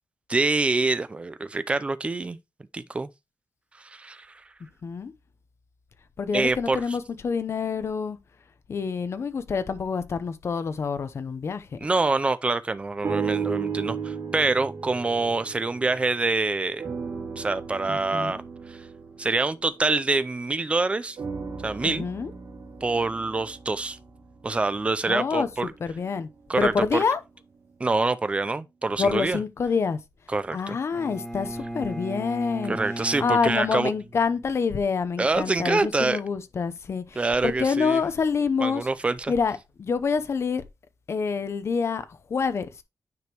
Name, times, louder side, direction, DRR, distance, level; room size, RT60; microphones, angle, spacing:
voice 1, 0.3-2.4 2.7-3.1 3.8-4.3 6.3-6.8 11.8-16.8 17.4-18.4 18.7-18.8 19.2-21.2 21.6-22.1 22.8-24.0 24.4-25.7 26.5-27.0 27.8-29.4 30.3-30.8 32.7-33.9 35.2-36.2 37.2-38.0 38.6-39.3, right 3 dB, 20° right, 0.5 m, -25 dB
voice 2, 4.8-5.1 6.2-8.2 8.7-11.8 17.9-18.4 21.8-22.3 25.1-26.3 26.6-27.2 29.0-30.0 30.5-38.9 39.3-40.6 41.1-42.8, left 5 dB, 50° left, 0.8 m, -27 dB
sound 1, 13.0-16.4 16.8-20.5 21.2-25.4 26.0-26.1, right 6 dB, 80° right, 2.5 m, -35 dB
Bowed string instrument, 30.9-34.8, right 1 dB, 10° left, 1.4 m, -36 dB
9.4 x 5.1 x 3.0 m
wide cardioid pair, 180°, 6 cm